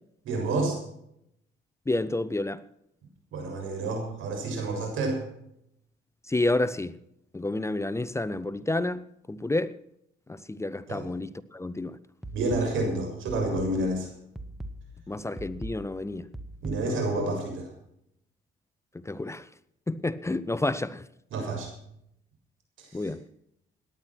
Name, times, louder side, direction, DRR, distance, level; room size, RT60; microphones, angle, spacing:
voice 1, 0.2-0.8 3.3-5.2 10.9-11.1 12.3-14.1 16.6-17.7 21.3-21.7 22.8-23.1, right 2 dB, 80° right, 6.9 m, -29 dB
voice 2, 1.9-2.6 6.3-6.9 7.3-9.0 9.3-9.8 10.3-12.0 15.1-16.3 16.9-17.0 19.1-19.5 19.9-21.0 22.9-23.2, left 2 dB, 15° left, 0.7 m, -29 dB
sound 1, 12.2-17.2, equal, ahead, 1.8 m, -42 dB
18.0 x 11.0 x 6.1 m
cardioid pair, 90°, 20 cm